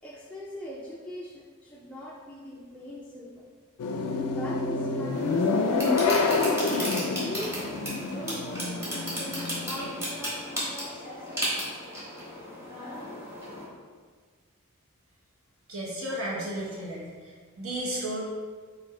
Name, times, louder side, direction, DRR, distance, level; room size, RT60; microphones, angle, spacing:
voice 1, 0.0-3.5 4.2-6.7 7.2-11.5, left 1 dB, 5° left, -5 dB, 0.3 m, -41 dB
sound 1, 3.8-10.0, left 3 dB, 90° left, 0.4 m, -28 dB
sound 2, 5.1-13.7, equal, 15° right, 1.3 m, -35 dB
voice 2, 15.7-17.1 17.6-18.2, right 1 dB, 70° right, -5 dB, 1.2 m, -33 dB
4.3 x 2.5 x 4.2 m, 1.5 s
head